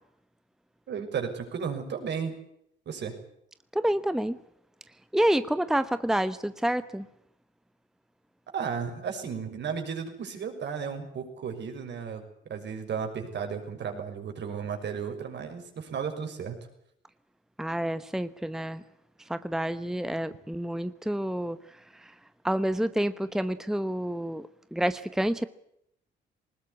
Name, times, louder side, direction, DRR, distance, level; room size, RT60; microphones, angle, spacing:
voice 1, 0.9-2.3 2.9-3.1 8.5-16.6, right 6 dB, 60° right, 5 dB, 6.3 m, -34 dB
voice 2, 3.7-4.4 5.1-7.0 17.6-18.8 19.3-21.6 22.4-25.5, right 1 dB, ahead, 13 dB, 1.0 m, -28 dB
20.0 x 20.0 x 9.7 m, 0.75 s
cardioid pair, 90°, 20 cm